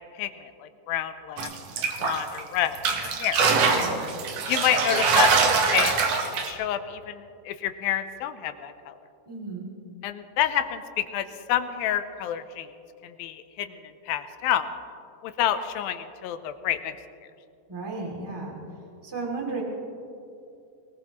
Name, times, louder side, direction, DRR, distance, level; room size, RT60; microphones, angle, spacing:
voice 1, 0.1-1.5 2.0-3.5 4.5-5.9 6.2-9.0 10.0-12.7 13.0-13.8 14.1-14.7 15.2-16.9, left 11 dB, 85° left, 10 dB, 2.5 m, -29 dB
sound 1, 1.4-2.4 2.8-6.5, right 5 dB, 60° right, 1.9 m, -23 dB
voice 2, 3.7-4.0 9.3-9.7 17.7-18.6 19.0-19.6, right 3 dB, 10° right, -2 dB, 2.0 m, -33 dB
22.5 x 19.0 x 3.1 m, 2.7 s
omnidirectional pair, 4.2 m